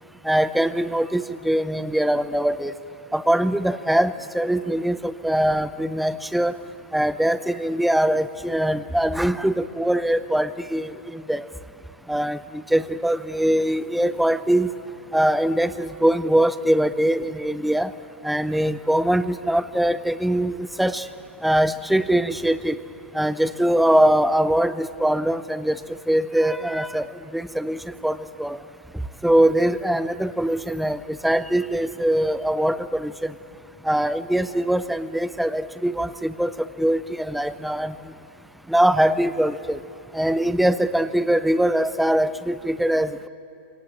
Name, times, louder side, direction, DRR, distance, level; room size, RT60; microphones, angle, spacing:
voice 1, 0.2-2.7 3.1-6.6 6.9-11.4 12.1-14.7 15.1-17.9 18.2-21.1 21.4-22.8 23.1-25.8 26.1-27.1 27.3-28.6 29.2-33.3 33.8-36.5 36.8-37.9 38.7-39.8 40.1-43.3, right 1 dB, ahead, 13 dB, 0.6 m, -22 dB
24.0 x 18.5 x 8.7 m, 2.7 s
hypercardioid pair, 135°, 7 cm